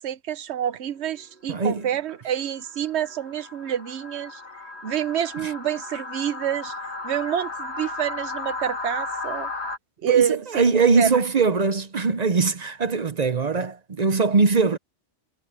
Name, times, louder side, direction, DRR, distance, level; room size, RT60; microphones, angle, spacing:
voice 1, 0.0-4.4 4.8-6.7 7.0-9.5 10.0-10.6 11.0-11.2, right 9 dB, 70° right, 1.0 m, -27 dB
sound 1, 1.2-1.4 2.0-9.8, left 3 dB, 65° left, 2.6 m, -34 dB
voice 2, 1.5-1.9 5.4-5.5 10.1-14.8, right 4 dB, 40° right, 0.7 m, -21 dB
omnidirectional pair, 1.2 m